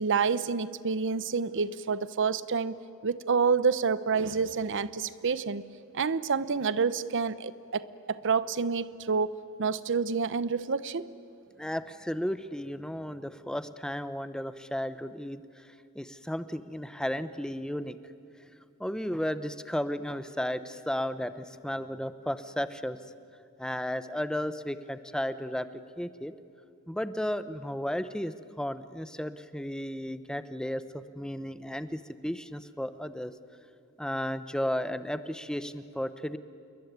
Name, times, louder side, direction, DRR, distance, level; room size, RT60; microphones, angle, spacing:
voice 1, 0.0-5.6 5.9-11.1, right 5 dB, 60° right, 16 dB, 0.8 m, -28 dB
voice 2, 11.6-15.7 15.9-18.0 18.8-23.0 23.6-25.7 26.0-26.3 26.9-33.3 34.0-36.4, equal, 5° left, 12 dB, 0.8 m, -34 dB
27.5 x 22.0 x 9.4 m, 2.4 s
head